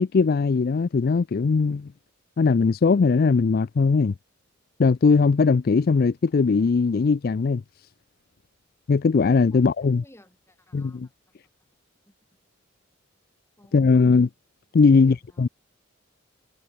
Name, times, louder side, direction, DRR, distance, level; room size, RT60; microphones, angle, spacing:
voice 1, 0.0-1.9 2.4-4.1 4.8-7.6 8.9-10.0 10.7-11.1 13.7-14.3 14.7-15.5, left 4 dB, 45° left, 0.4 m, -20 dB
voice 2, 9.5-11.0 12.1-12.2 13.6-13.9 14.9-15.4, left 1 dB, 15° left, 7.7 m, -54 dB
head